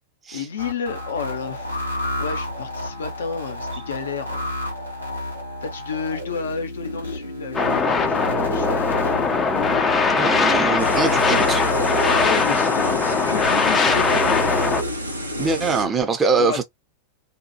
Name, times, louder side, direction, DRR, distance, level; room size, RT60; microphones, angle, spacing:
voice 1, 0.3-1.8 2.2-4.6 5.6-9.2 12.1-14.5 15.6-15.8 16.3-16.6, left 6 dB, 65° left, 0.7 m, -31 dB
sound 1, 0.6-15.9, equal, 90° left, 1.1 m, -30 dB
sound 2, 7.5-14.8, left 4 dB, 20° left, 0.5 m, -20 dB
voice 2, 10.1-11.6 15.4-16.6, right 4 dB, 20° right, 0.6 m, -23 dB
sound 3, 10.8-15.8, right 1 dB, 85° right, 0.6 m, -33 dB
2.8 x 2.2 x 2.8 m
figure-of-eight pair, 90°, 0 cm